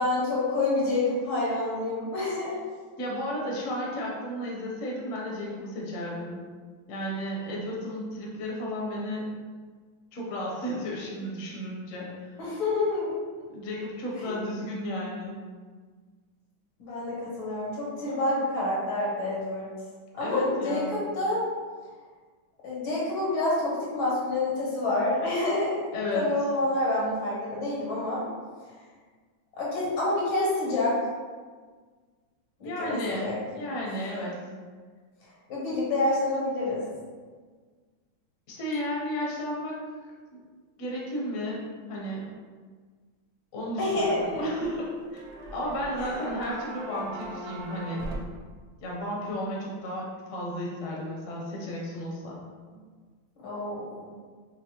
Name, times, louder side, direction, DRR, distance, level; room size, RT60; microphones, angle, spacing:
voice 1, 0.0-2.6 12.4-13.1 14.2-14.3 16.8-19.7 20.1-21.4 22.6-25.9 26.1-28.3 29.6-31.0 32.6-33.3 35.2-36.8 43.8-44.5 53.4-54.1, left 2 dB, 85° left, -6 dB, 2.0 m, -28 dB
voice 2, 3.0-6.4 6.9-9.3 10.1-12.4 13.5-15.4 20.2-21.0 25.9-26.3 32.6-34.4 38.5-39.8 40.8-42.2 43.5-45.2 45.5-48.0 48.8-52.4, equal, 55° left, -4 dB, 0.9 m, -33 dB
sound 1, 43.9-44.7 45.1-48.2, right 1 dB, 70° right, 0.9 m, -40 dB
5.7 x 2.1 x 2.8 m, 1.5 s
omnidirectional pair, 2.2 m